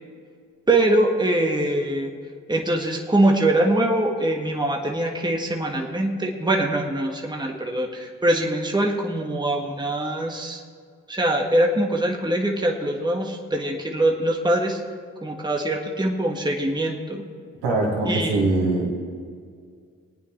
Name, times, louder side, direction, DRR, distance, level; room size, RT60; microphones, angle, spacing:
voice 1, 0.7-2.1 2.5-10.6 11.1-14.8 15.2-17.3 18.0-18.4, right 1 dB, 10° right, 1 dB, 1.6 m, -23 dB
voice 2, 17.6-18.9, right 2 dB, 85° right, -3 dB, 2.3 m, -22 dB
24.0 x 9.1 x 3.3 m, 2.1 s
hypercardioid pair, 45°, 37 cm